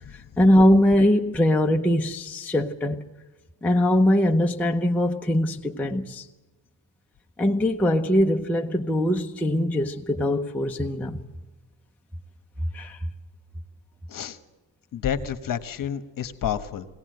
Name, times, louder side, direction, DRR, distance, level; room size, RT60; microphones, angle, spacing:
voice 1, 0.1-3.0 3.6-6.3 7.4-11.2 12.7-13.0, left 1 dB, 5° left, 0.6 m, -22 dB
voice 2, 14.9-16.9, left 9 dB, 45° left, 1.3 m, -29 dB
22.5 x 17.5 x 7.8 m
cardioid pair, 165°, 44 cm